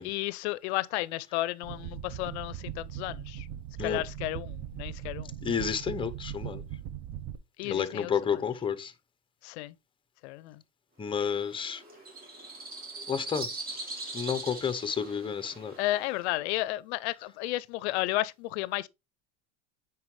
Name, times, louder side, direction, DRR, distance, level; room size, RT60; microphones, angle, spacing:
voice 1, 0.0-3.5 3.8-5.3 7.6-8.4 9.4-9.7 10.2-10.6 15.8-18.9, left 18 dB, 80° left, 0.5 m, -33 dB
sound 1, 1.6-7.4, right 10 dB, 45° right, 0.7 m, -39 dB
voice 2, 5.4-6.6 7.6-8.9 11.0-11.8 13.1-13.5 14.1-15.7, left 7 dB, 15° left, 0.8 m, -31 dB
sound 2, 11.1-16.3, right 3 dB, 25° right, 3.2 m, -41 dB
9.4 x 4.7 x 3.2 m
supercardioid pair, 110°, 33 cm